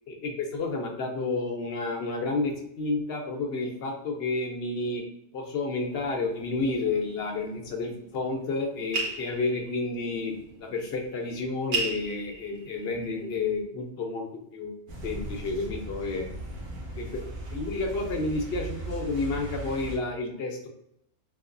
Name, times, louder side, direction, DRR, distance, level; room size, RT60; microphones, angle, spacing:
voice 1, 0.1-5.0 5.3-10.3 10.6-14.7 15.0-16.3 16.9-17.2 17.5-20.7, left 3 dB, 60° left, 2 dB, 0.9 m, -30 dB
sound 1, 5.8-13.6, right 3 dB, 60° right, 0.5 m, -38 dB
sound 2, 14.9-20.0, right 2 dB, 80° right, 1.3 m, -38 dB
3.7 x 2.7 x 2.5 m, 0.73 s
omnidirectional pair, 1.3 m